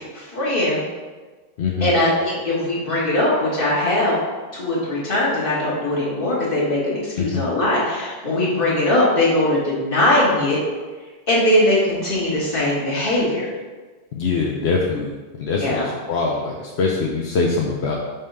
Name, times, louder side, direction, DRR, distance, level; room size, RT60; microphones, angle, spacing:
voice 1, 0.2-0.8 1.8-4.2 4.5-10.6 11.3-13.5 15.6-15.9, left 1 dB, 55° left, -6 dB, 1.8 m, -20 dB
voice 2, 1.6-1.9 7.2-7.4 14.1-15.1 15.4-18.0, left 4 dB, 80° left, -1 dB, 0.9 m, -23 dB
5.4 x 3.5 x 5.4 m, 1.3 s
omnidirectional pair, 1.1 m